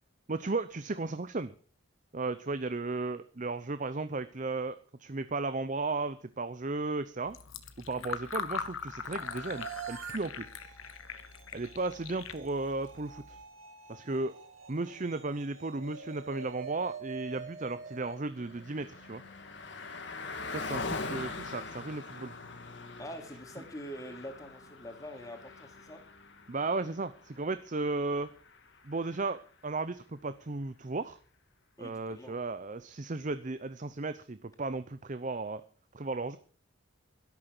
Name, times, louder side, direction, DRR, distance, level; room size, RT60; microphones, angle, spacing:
voice 1, 0.3-1.5 2.1-7.4 7.8-10.5 11.5-13.4 13.9-14.3 14.7-19.2 20.5-22.3 26.5-28.3 28.8-31.2 31.8-35.6 35.9-36.4, right 3 dB, 35° right, 12 dB, 0.6 m, -35 dB
Fill (with liquid), 7.2-13.4, left 6 dB, 80° left, 1.4 m, -41 dB
sound 1, 9.0-19.2, right 6 dB, 80° right, 2.6 m, -47 dB
Car passing by, 17.7-29.5, left 3 dB, 55° left, 1.9 m, -43 dB
voice 2, 23.0-26.0 31.8-32.3, equal, 15° left, 4 dB, 2.9 m, -45 dB
12.5 x 12.0 x 6.1 m, 0.41 s
head